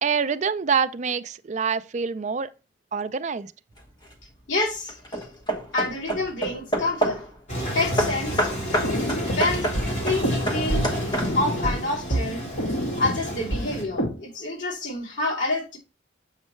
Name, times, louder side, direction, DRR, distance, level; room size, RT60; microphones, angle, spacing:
voice 1, 0.0-2.5 2.9-3.5, right 6 dB, 40° right, 0.4 m, -26 dB
Hammer / Wood, 3.8-4.2 4.9-7.3 8.0-11.6, right 1 dB, 25° left, 1.2 m, -28 dB
voice 2, 4.5-5.3 5.7-7.2 7.7-8.5 9.3-9.7 10.0-10.9 11.3-12.5 13.0-15.8, left 2 dB, 80° left, 2.5 m, -27 dB
Toilet flush, 7.5-13.8, equal, 40° left, 2.8 m, -31 dB
sound 1, 8.5-14.2, equal, 65° left, 2.2 m, -29 dB
7.3 x 5.4 x 3.1 m
head